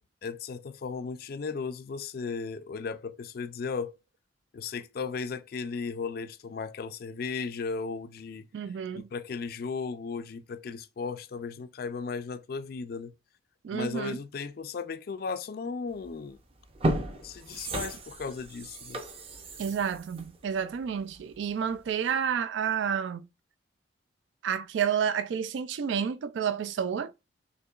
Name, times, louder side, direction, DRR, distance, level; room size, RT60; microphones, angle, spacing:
voice 1, 0.2-4.0 4.5-8.5 8.9-13.1 13.7-16.4 17.2-19.0, left 5 dB, 55° left, 0.4 m, -36 dB
voice 2, 8.5-9.1 13.6-14.2 19.6-23.3 24.4-27.1, right 7 dB, 75° right, 0.3 m, -30 dB
sound 1, 16.0-16.2 16.6-21.3 21.7-21.8, right 1 dB, 30° right, 0.6 m, -34 dB
6.3 x 2.9 x 2.4 m
head